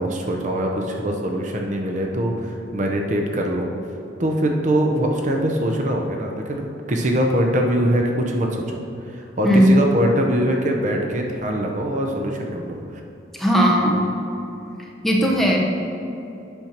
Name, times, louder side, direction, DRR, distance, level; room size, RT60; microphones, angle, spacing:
voice 1, 0.0-3.7 4.2-8.8 9.1-13.0, right 1 dB, 40° right, 1 dB, 0.7 m, -23 dB
voice 2, 13.3-14.1 15.0-15.6, equal, ahead, -2 dB, 0.9 m, -17 dB
8.8 x 4.4 x 5.8 m, 2.9 s
head